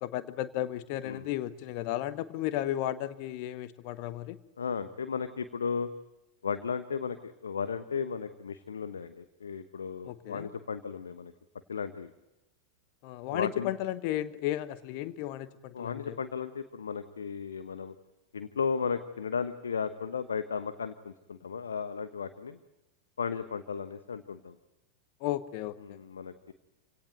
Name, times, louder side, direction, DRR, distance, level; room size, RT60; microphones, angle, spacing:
voice 1, 0.0-4.4 10.0-10.5 13.0-16.2 25.2-25.8, left 13 dB, 45° left, 13 dB, 1.1 m, -34 dB
voice 2, 4.6-5.9 6.4-11.3 11.7-12.1 13.3-13.7 15.7-17.9 18.3-22.6 23.2-24.5 25.8-26.5, left 6 dB, 70° left, 10 dB, 1.1 m, -35 dB
28.0 x 17.5 x 9.2 m, 0.98 s
figure-of-eight pair, 90°, 0 cm